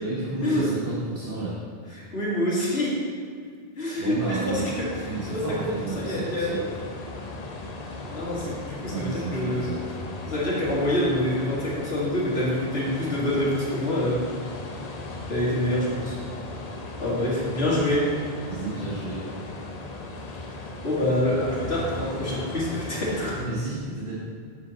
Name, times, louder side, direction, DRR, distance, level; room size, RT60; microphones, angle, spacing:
voice 1, 0.0-1.6 4.0-6.6 8.9-9.8 18.5-19.2 23.3-24.2, right 2 dB, 65° right, -7 dB, 1.4 m, -31 dB
voice 2, 2.0-2.9 3.8-4.6 5.3-6.6 8.1-9.7 10.2-14.2 15.3-16.2 17.0-18.0 20.8-23.3, left 1 dB, 85° left, -7 dB, 2.2 m, -26 dB
sound 1, 4.2-23.5, left 2 dB, 45° left, 0.7 m, -37 dB
7.5 x 6.4 x 4.1 m, 2.1 s
omnidirectional pair, 1.0 m